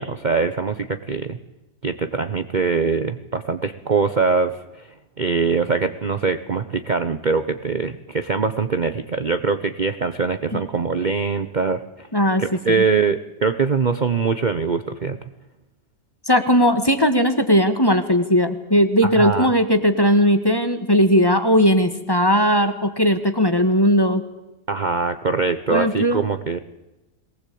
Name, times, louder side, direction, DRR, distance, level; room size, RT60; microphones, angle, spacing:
voice 1, 0.0-1.4 1.8-4.9 5.2-12.1 12.4-15.2 19.1-19.5 24.7-26.6, right 4 dB, 35° right, 10 dB, 0.9 m, -23 dB
voice 2, 12.1-12.4 12.8-12.9 16.2-24.2 25.7-26.2, equal, 15° left, 9 dB, 1.6 m, -18 dB
22.0 x 19.0 x 8.5 m, 1.0 s
omnidirectional pair, 1.6 m